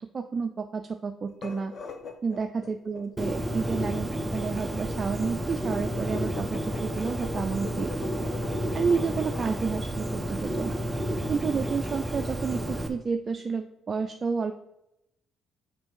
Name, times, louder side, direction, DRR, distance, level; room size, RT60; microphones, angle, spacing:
voice 1, 0.1-1.7 2.2-7.9 8.7-10.8 11.3-14.5, right 5 dB, 40° right, 6 dB, 0.5 m, -30 dB
sound 1, 1.3-9.5, left 5 dB, 55° left, 1.0 m, -43 dB
Bird, 3.2-12.9, equal, 5° right, 1.0 m, -31 dB
6.0 x 4.6 x 6.4 m, 0.81 s
cardioid pair, 90°, 0 cm